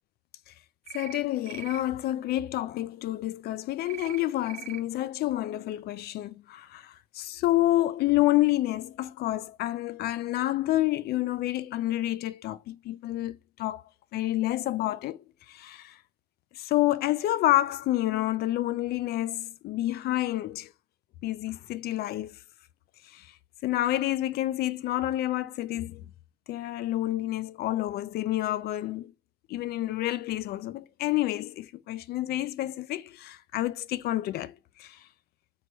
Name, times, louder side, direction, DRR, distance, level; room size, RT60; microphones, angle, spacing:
voice 1, 0.9-13.8 14.1-15.2 15.5-15.9 16.5-20.7 21.2-22.4 23.1-23.3 23.6-26.0 26.5-29.1 29.5-35.0, left 15 dB, 70° left, 0.4 m, -29 dB
sound 1, 0.9-1.2 1.5-1.8 3.9-4.2 4.5-4.8, right 10 dB, 45° right, 0.5 m, -41 dB
4.4 x 2.9 x 3.5 m
cardioid pair, 110°, 17 cm